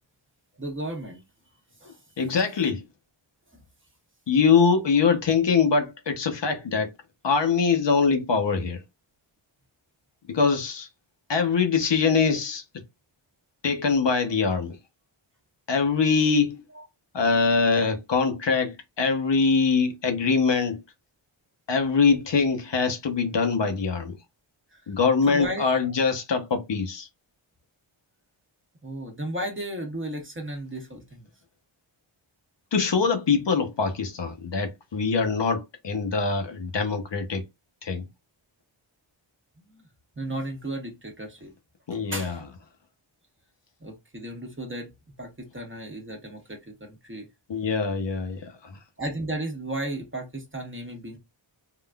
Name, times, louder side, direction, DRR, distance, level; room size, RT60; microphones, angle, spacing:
voice 1, 0.6-1.2 1.8-2.0 24.7-24.8 25.3-25.8 28.8-31.3 40.2-41.5 41.9-42.4 43.8-44.9 45.2-47.3 49.0-51.2, right 1 dB, 25° right, 1.1 m, -34 dB
voice 2, 2.2-2.8 4.3-6.9 7.2-8.8 10.3-10.9 11.3-12.6 13.6-14.8 15.7-16.6 17.1-20.8 21.7-24.2 24.9-27.1 32.7-37.4 37.8-38.1 41.9-42.4 47.5-48.8, left 5 dB, 60° left, 0.8 m, -23 dB
3.7 x 2.4 x 2.2 m
wide cardioid pair, 100°, 50 cm